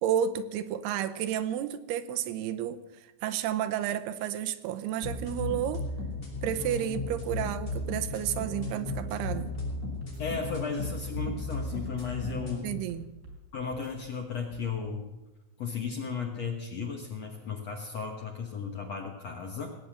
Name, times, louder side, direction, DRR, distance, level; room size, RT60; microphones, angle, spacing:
voice 1, 0.0-5.9 6.4-9.5 12.6-13.1, right 10 dB, 80° right, 11 dB, 2.7 m, -31 dB
sound 1, 5.0-12.6, left 3 dB, 15° left, 4.5 m, -34 dB
sound 2, 7.7-7.9 8.2-8.4 9.0-9.7 10.0-10.2 10.8-11.6 11.9-12.1 12.7-13.4 13.7-13.9 14.5-14.7, right 2 dB, 60° right, 5.2 m, -48 dB
voice 2, 10.2-12.7 13.5-15.0 15.6-19.7, left 5 dB, 70° left, 2 dB, 1.6 m, -35 dB
19.0 x 8.5 x 7.6 m, 1.0 s
omnidirectional pair, 4.8 m